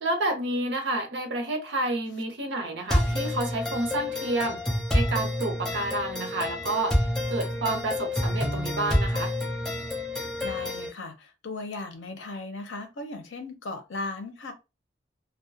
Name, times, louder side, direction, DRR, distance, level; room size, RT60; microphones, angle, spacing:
voice 1, 0.0-4.6 4.9-9.3, right 2 dB, 70° right, 0.6 m, -29 dB
sound 1, 2.9-10.9, left 1 dB, 5° left, 0.5 m, -28 dB
voice 2, 10.1-14.5, left 2 dB, 85° left, 0.6 m, -37 dB
2.3 x 2.1 x 2.6 m
head